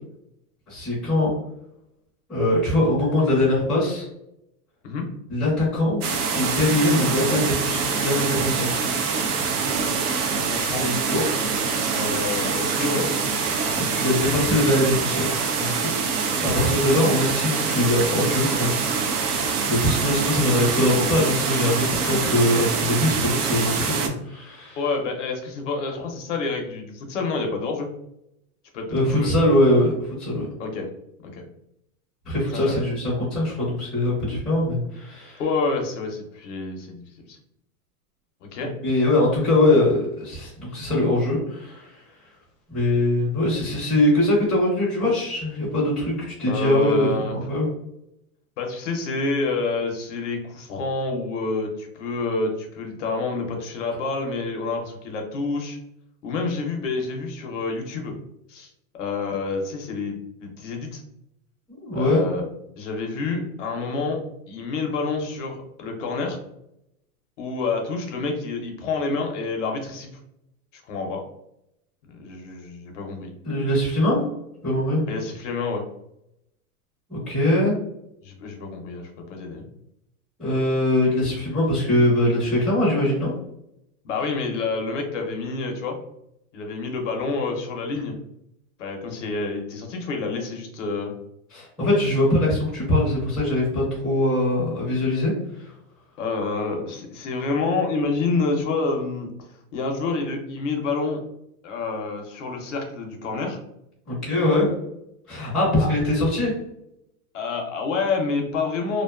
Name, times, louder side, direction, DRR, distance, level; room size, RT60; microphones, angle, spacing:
voice 1, 0.7-1.3 2.3-4.1 5.3-6.0 6.3-8.7 10.8-11.2 13.8-15.3 15.6-18.7 19.6-24.8 28.9-30.5 32.2-35.4 38.6-42.0 42.7-47.7 61.7-62.2 73.4-74.2 74.6-75.0 77.1-77.8 80.4-83.3 91.5-95.7 104.1-104.7 105.3-106.5, left 1 dB, ahead, -10 dB, 0.5 m, -22 dB
sound 1, 6.0-24.1, right 5 dB, 80° right, 0.6 m, -25 dB
voice 2, 10.3-10.9 11.4-11.5 11.9-13.1 16.3-16.6 24.8-27.9 28.7-29.3 30.6-30.9 31.3-31.4 32.5-32.8 35.4-37.0 37.3-37.4 38.5-38.7 46.5-47.4 48.6-55.8 56.2-58.1 58.5-58.7 59.0-61.0 61.9-62.5 62.8-64.2 64.5-66.4 67.4-70.1 70.9-71.2 72.0-73.3 75.1-75.8 78.2-79.7 84.0-86.0 86.5-88.2 88.8-91.1 96.2-101.2 101.6-103.6 105.8-105.9 107.3-109.0, left 3 dB, 55° left, 2 dB, 0.6 m, -28 dB
2.4 x 2.3 x 2.2 m, 0.80 s
supercardioid pair, 165°, 45 cm